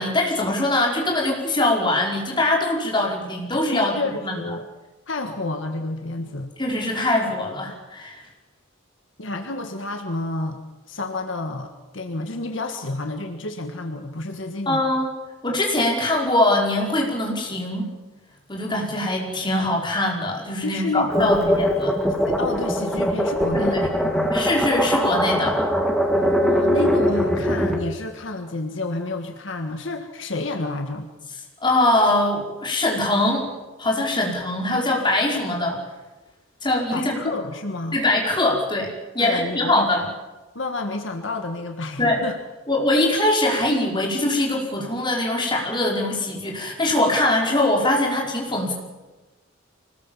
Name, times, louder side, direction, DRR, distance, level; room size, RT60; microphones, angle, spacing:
voice 1, 0.0-3.9 4.2-4.4 6.6-8.2 14.7-15.1 15.4-17.9 18.5-21.9 23.5-23.8 24.3-25.6 31.6-33.5 33.8-35.8 36.6-37.2 37.9-40.1 42.0-42.2 42.7-48.7, left 1 dB, 25° left, -1 dB, 5.3 m, -22 dB
voice 2, 3.7-4.6 5.1-6.5 9.2-10.6 10.9-14.8 20.6-21.6 22.3-24.4 26.2-31.1 36.9-38.0 39.2-40.1 40.6-42.4, left 2 dB, 70° left, 5 dB, 1.7 m, -30 dB
sound 1, 21.1-27.8, equal, ahead, 2.7 m, -21 dB
25.0 x 20.0 x 7.4 m, 1.1 s
head